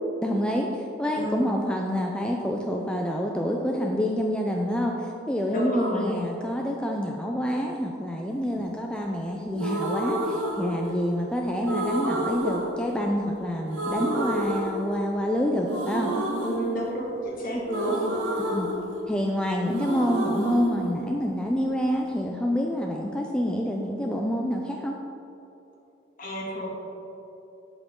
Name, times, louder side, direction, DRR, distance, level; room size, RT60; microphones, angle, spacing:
voice 1, 0.2-16.1 17.5-17.6 18.4-18.7 19.1-25.0, equal, 5° left, 0 dB, 0.5 m, -27 dB
voice 2, 1.2-1.5 5.5-6.2 16.4-18.2 26.2-26.7, equal, 45° left, -4 dB, 2.1 m, -30 dB
sound 1, 9.5-11.2 11.7-13.4 13.7-15.3 15.7-19.4 19.6-21.7, right 1 dB, 90° right, 1.4 m, -30 dB
8.3 x 7.9 x 3.8 m, 2.9 s
head